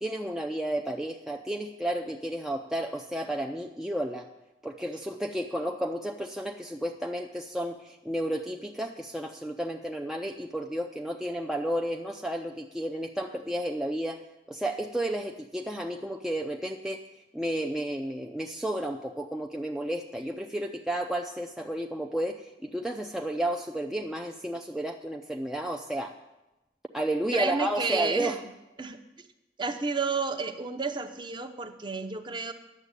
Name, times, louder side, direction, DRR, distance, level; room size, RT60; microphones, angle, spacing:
voice 1, 0.0-4.3 4.6-14.2 14.5-17.0 17.3-26.1 26.9-28.4, right 1 dB, 5° right, 3 dB, 0.4 m, -32 dB
voice 2, 27.3-28.3 28.8-29.0 29.6-32.5, right 4 dB, 25° right, 7 dB, 0.8 m, -31 dB
9.8 x 7.1 x 8.2 m, 0.98 s
head